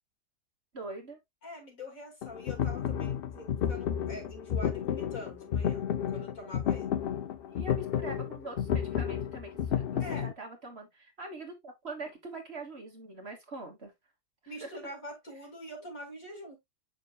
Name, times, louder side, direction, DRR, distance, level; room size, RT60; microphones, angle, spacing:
voice 1, 0.7-1.2 3.3-3.5 7.5-13.9 14.4-14.8, right 2 dB, 40° right, 1.7 m, -43 dB
voice 2, 1.4-5.9 6.1-6.9 10.0-10.3 14.5-16.6, left 1 dB, 55° left, 3.1 m, -44 dB
sound 1, 2.2-10.3, left 9 dB, 85° left, 0.5 m, -32 dB
7.0 x 5.9 x 2.3 m
omnidirectional pair, 1.7 m